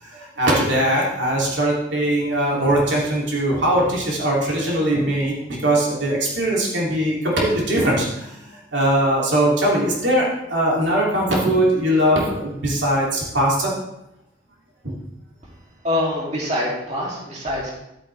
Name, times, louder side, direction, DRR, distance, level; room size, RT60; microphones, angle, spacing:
voice 1, 0.0-5.3 5.6-13.7 14.8-14.9, right 1 dB, 85° right, -4 dB, 2.8 m, -20 dB
voice 2, 15.8-17.7, left 1 dB, 40° right, -5 dB, 2.8 m, -24 dB
12.5 x 8.6 x 3.4 m, 0.83 s
head